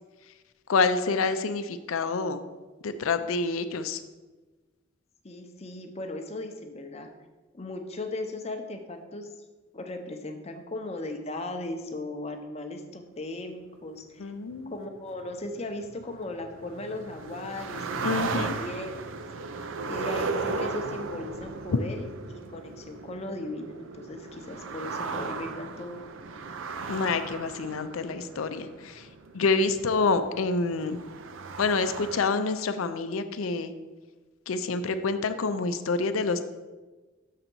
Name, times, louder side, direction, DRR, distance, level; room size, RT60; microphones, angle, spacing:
voice 1, 0.7-2.4 2.8-4.0 14.2-14.8 18.0-18.6 21.7-21.8 26.9-29.1 29.3-31.1 31.6-33.7 34.5-36.4, left 4 dB, 85° left, 10 dB, 0.5 m, -27 dB
voice 2, 5.2-7.1 7.5-9.3 9.7-14.3 14.7-19.0 19.9-22.0 22.3-26.0, left 2 dB, 30° left, 5 dB, 0.6 m, -37 dB
sound 1, 14.5-32.2, right 4 dB, 75° right, 0.5 m, -36 dB
6.6 x 3.9 x 6.0 m, 1.2 s
head